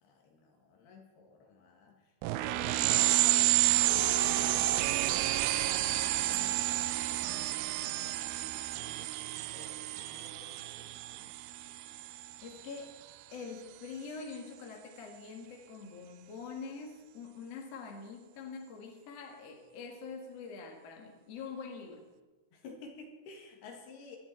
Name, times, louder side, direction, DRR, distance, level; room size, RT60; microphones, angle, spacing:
voice 1, 0.0-2.0 2.4-11.3 22.5-24.2, left 4 dB, 75° left, 1 dB, 3.9 m, -52 dB
sound 1, 2.2-12.4, right 16 dB, 80° right, 2.4 m, -30 dB
voice 2, 12.4-12.9 13.3-22.1, left 5 dB, 45° left, 2 dB, 2.4 m, -44 dB
19.5 x 11.5 x 4.5 m, 1.2 s
omnidirectional pair, 4.7 m